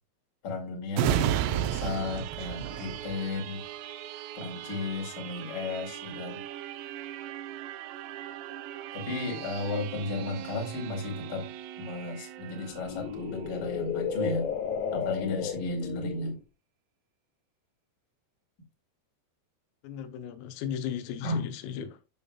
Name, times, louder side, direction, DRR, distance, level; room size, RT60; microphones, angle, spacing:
voice 1, 0.4-3.6 4.3-6.4 8.9-11.5 11.8-14.4 14.9-16.4 21.2-21.5, left 3 dB, 40° left, 1.5 m, -34 dB
sound 1, 0.9-14.3 14.7-14.8, right 12 dB, 85° right, 3.4 m, -36 dB
sound 2, 9.6-9.7 12.6-16.4, left 7 dB, 70° left, 2.2 m, -33 dB
voice 2, 19.8-22.0, left 9 dB, 90° left, 3.6 m, -36 dB
9.5 x 6.9 x 2.3 m
omnidirectional pair, 5.9 m